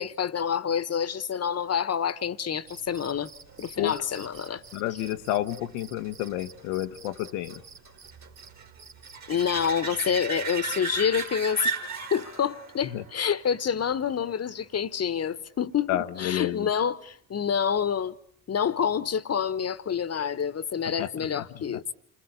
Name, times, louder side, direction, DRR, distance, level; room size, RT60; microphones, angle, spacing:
voice 1, 0.0-3.3 3.6-4.6 9.3-11.7 12.1-18.2 18.5-21.8, left 7 dB, 35° left, 1.3 m, -27 dB
Cricket, 2.6-9.8, right 5 dB, 85° right, 2.0 m, -50 dB
sound 1, 3.5-14.8 20.4-20.5, right 4 dB, 40° right, 2.6 m, -38 dB
voice 2, 4.7-7.6 12.9-13.0 15.9-16.7 21.0-21.4 21.7-21.8, left 13 dB, 70° left, 1.1 m, -30 dB
28.5 x 22.5 x 8.5 m
hypercardioid pair, 50°, 42 cm